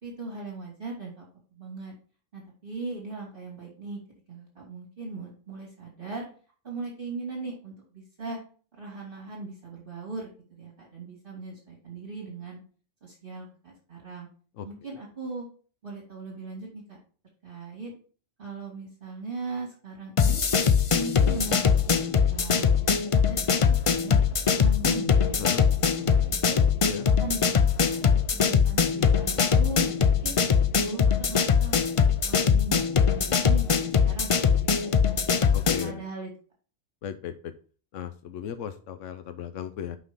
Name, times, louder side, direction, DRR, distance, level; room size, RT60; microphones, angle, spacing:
voice 1, 0.0-1.9 2.3-4.0 4.3-6.3 6.6-8.4 8.8-12.6 13.0-14.3 14.6-15.5 15.8-17.0 17.4-17.9 18.4-20.4 20.9-22.7 23.1-26.6 27.2-30.4 30.8-31.8 32.2-32.8 33.1-36.3, right 3 dB, 45° right, -3 dB, 2.9 m, -39 dB
sound 1, 20.2-35.9, left 6 dB, 50° left, 0.4 m, -22 dB
voice 2, 35.5-36.0 37.0-37.5 37.9-40.0, left 9 dB, 85° left, 10 dB, 1.0 m, -36 dB
6.1 x 5.6 x 5.3 m, 0.40 s
omnidirectional pair, 1.3 m